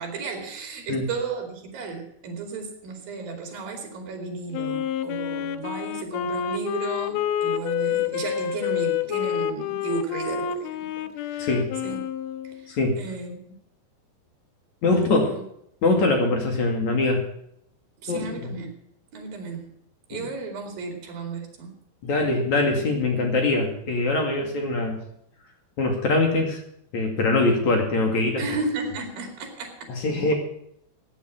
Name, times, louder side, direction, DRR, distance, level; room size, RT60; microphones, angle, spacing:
voice 1, 0.0-11.5 11.8-12.0 12.4-13.6 14.9-15.4 18.0-18.7 19.1-19.6 20.1-21.7 28.4-29.9, right 4 dB, 70° right, 4 dB, 4.4 m, -34 dB
Wind instrument woodwind instrument, 4.5-12.7, left 9 dB, 90° left, 2.8 m, -28 dB
voice 2, 11.4-11.7 12.7-13.0 14.8-15.3 15.8-17.2 18.1-18.5 20.1-20.2 22.0-25.0 25.8-26.6 26.9-28.4 29.9-30.3, left 2 dB, 50° left, 3 dB, 3.5 m, -23 dB
16.5 x 9.5 x 6.0 m, 0.72 s
omnidirectional pair, 4.4 m